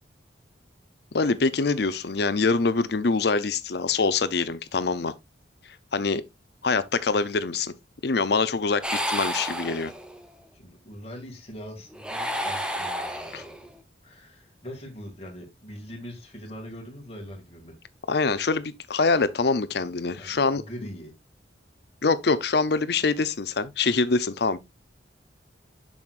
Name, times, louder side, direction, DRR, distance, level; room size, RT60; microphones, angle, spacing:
voice 1, 1.1-5.1 5.9-6.2 6.6-7.7 8.0-9.9 13.3-13.4 18.1-20.6 22.0-24.6, left 4 dB, 60° left, 0.6 m, -24 dB
sound 1, 8.8-10.3 11.9-13.7, equal, 5° right, 0.7 m, -31 dB
voice 2, 10.5-13.7 14.0-17.8 20.2-21.1, equal, 35° left, 2.3 m, -42 dB
7.0 x 6.4 x 2.5 m
head